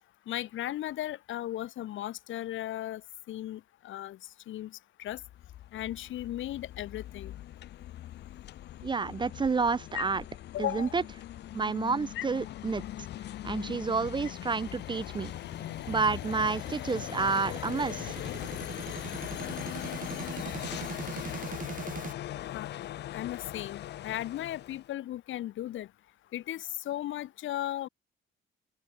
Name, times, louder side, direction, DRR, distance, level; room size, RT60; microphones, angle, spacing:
voice 1, 0.3-3.0 3.3-4.2 4.5-5.2 5.7-7.3 9.9-10.0 10.5-10.9 12.2-12.3 22.5-22.7 23.1-25.9 26.3-27.9, left 13 dB, 75° left, 1.7 m, -36 dB
sound 1, 5.1-24.9, left 13 dB, 60° left, 0.5 m, -40 dB
voice 2, 8.8-10.2 10.6-11.0 11.5-12.8 13.4-15.3 15.9-18.2, right 4 dB, 25° right, 0.4 m, -29 dB
sound 2, 14.0-22.1, right 6 dB, 45° right, 2.4 m, -43 dB
open air
cardioid pair, 90°, 20 cm